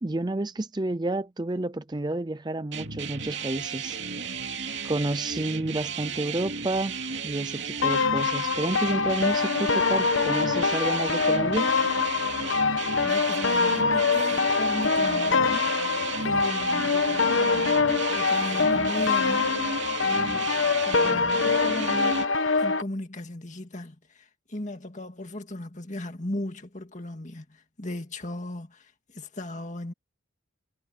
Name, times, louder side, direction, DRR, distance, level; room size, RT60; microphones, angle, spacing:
voice 1, 0.0-4.0 4.8-7.0 7.2-11.7, right 2 dB, 20° right, 0.5 m, -30 dB
sound 1, 2.7-22.3, right 5 dB, 60° right, 2.9 m, -34 dB
sound 2, 7.8-22.8, left 4 dB, 75° left, 1.1 m, -24 dB
voice 2, 12.6-15.7 16.2-19.5 20.0-22.2 22.5-29.9, left 1 dB, 35° left, 2.1 m, -37 dB
head